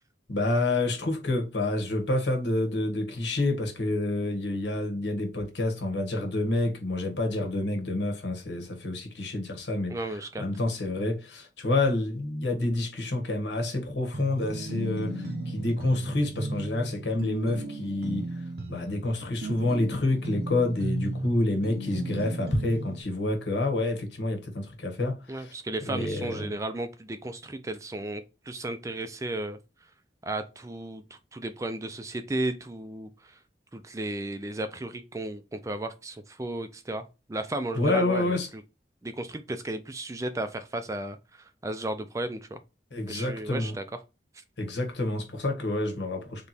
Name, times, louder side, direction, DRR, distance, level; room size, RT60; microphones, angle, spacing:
voice 1, 0.3-25.5 25.8-26.5 37.7-38.5 42.9-43.7 44.6-46.5, left 2 dB, 90° left, 1.2 m, -28 dB
voice 2, 9.9-10.4 25.3-29.6 30.2-33.4 33.7-38.6 39.0-42.6 43.1-43.8, right 1 dB, 20° right, 0.4 m, -34 dB
sound 1, 14.1-23.0, right 1 dB, 65° right, 0.7 m, -35 dB
3.4 x 3.0 x 4.0 m
head